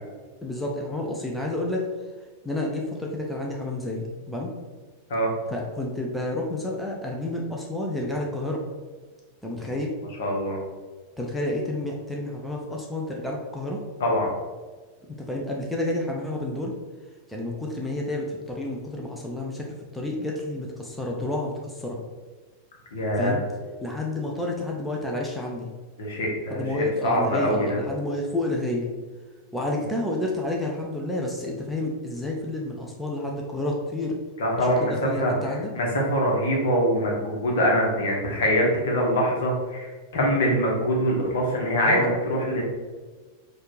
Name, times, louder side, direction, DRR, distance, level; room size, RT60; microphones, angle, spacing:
voice 1, 0.4-1.8 2.4-4.5 5.5-8.6 9.4-9.9 11.2-13.8 15.2-16.7 17.3-22.0 23.2-23.4 23.8-25.7 26.5-28.9 29.5-34.2 34.6-35.7 41.8-42.1, left 1 dB, 5° left, -2 dB, 0.6 m, -30 dB
voice 2, 10.2-10.6 14.0-14.3 22.9-23.4 26.0-27.8 34.4-35.3 35.7-42.6, equal, 60° left, -1 dB, 1.2 m, -24 dB
4.4 x 2.5 x 4.6 m, 1.3 s
figure-of-eight pair, 90°, 0 cm